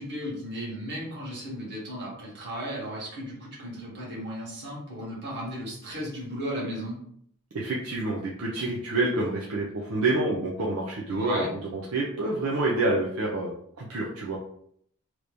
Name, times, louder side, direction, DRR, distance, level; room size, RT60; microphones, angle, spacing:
voice 1, 0.0-7.0 11.1-11.5, equal, 50° right, -4 dB, 1.3 m, -35 dB
voice 2, 7.5-13.5 13.8-14.4, right 2 dB, 70° right, -3 dB, 0.6 m, -28 dB
3.0 x 2.6 x 3.3 m, 0.68 s
head